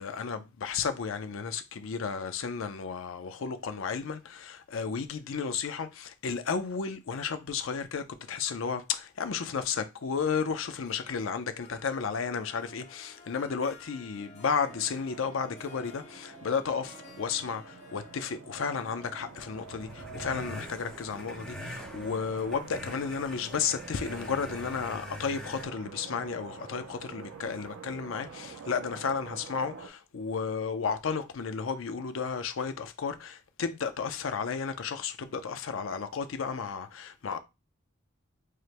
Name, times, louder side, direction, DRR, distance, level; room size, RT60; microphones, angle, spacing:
voice 1, 0.0-37.4, left 6 dB, 75° left, 0.5 m, -33 dB
Harp, 10.8-22.3, left 2 dB, 35° left, 0.8 m, -54 dB
sound 1, 14.7-29.9, right 5 dB, 75° right, 0.5 m, -47 dB
sound 2, 19.5-25.6, left 1 dB, 5° left, 0.8 m, -44 dB
4.7 x 2.1 x 2.8 m
head